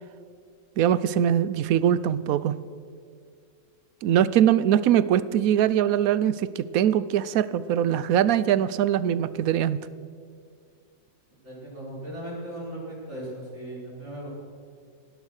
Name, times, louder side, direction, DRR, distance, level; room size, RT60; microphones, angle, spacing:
voice 1, 0.8-2.6 4.0-9.8, right 10 dB, 65° right, 17 dB, 1.0 m, -22 dB
voice 2, 11.4-14.3, right 1 dB, 40° right, -6 dB, 5.6 m, -37 dB
18.0 x 12.0 x 6.5 m, 2.2 s
omnidirectional pair, 1.8 m